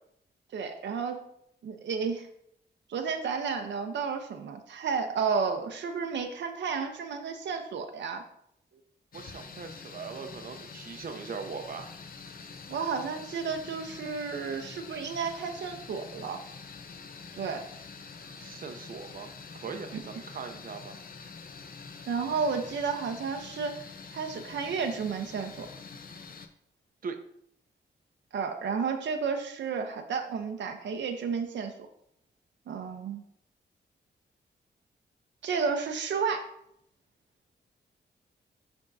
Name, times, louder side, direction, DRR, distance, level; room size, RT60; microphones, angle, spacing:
voice 1, 0.5-1.2 1.6-2.3 2.9-8.2 12.7-16.4 17.4-17.6 22.1-23.8 24.1-25.7 28.3-31.7 32.7-33.2 35.4-36.5, right 5 dB, 85° right, 5 dB, 0.7 m, -32 dB
sound 1, 9.1-26.5, left 5 dB, 55° left, 0.7 m, -46 dB
voice 2, 9.1-11.9 18.4-21.0 27.0-27.2, right 5 dB, 55° right, 6 dB, 0.6 m, -40 dB
10.5 x 3.6 x 2.7 m, 0.72 s
cardioid pair, 85°, 18 cm